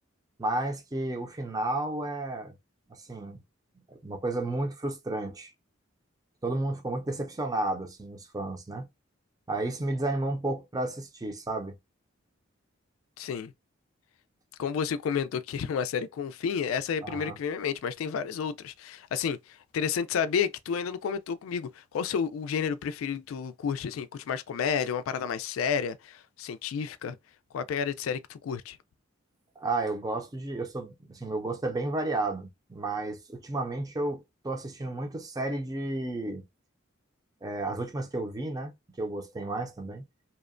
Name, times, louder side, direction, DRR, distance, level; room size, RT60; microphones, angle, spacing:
voice 1, 0.4-2.5 2.9-3.4 3.9-5.5 6.4-8.9 9.5-11.7 17.0-17.4 29.6-36.4 37.4-38.7 39.0-40.0, right 2 dB, 20° right, 0.5 m, -32 dB
voice 2, 13.2-13.5 14.6-27.2 27.5-28.8, left 7 dB, 85° left, 0.3 m, -31 dB
2.8 x 2.1 x 2.4 m
head